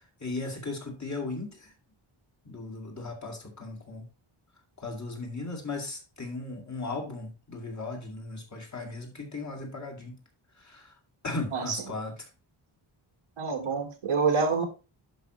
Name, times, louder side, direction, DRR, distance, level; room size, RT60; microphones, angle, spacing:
voice 1, 0.2-1.7 2.5-4.1 4.8-10.1 10.6-10.9 11.2-12.1, left 3 dB, 35° left, 2.1 m, -37 dB
voice 2, 11.5-11.8 13.4-14.6, right 5 dB, 75° right, 1.5 m, -27 dB
11.5 x 5.1 x 3.0 m
wide cardioid pair, 160°, 50 cm